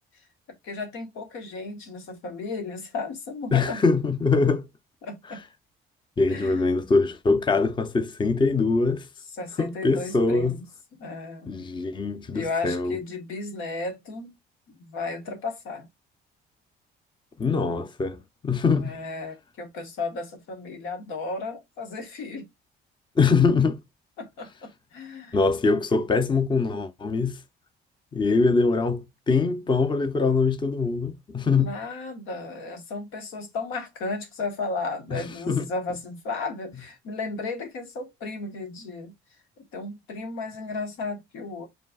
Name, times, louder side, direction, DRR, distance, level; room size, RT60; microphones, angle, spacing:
voice 1, 0.6-3.8 5.0-5.4 6.3-6.6 9.4-10.6 11.0-11.6 12.3-14.3 14.8-15.9 18.7-22.5 24.2-25.4 25.7-25.8 31.5-39.1 39.7-41.7, left 3 dB, 85° left, 1.3 m, -34 dB
voice 2, 3.5-4.7 6.2-9.1 9.6-10.6 11.5-13.0 17.4-18.9 23.2-23.8 25.3-27.4 28.1-31.7 35.1-35.6, left 4 dB, 25° left, 0.6 m, -23 dB
5.2 x 3.2 x 2.3 m
cardioid pair, 90°, 20 cm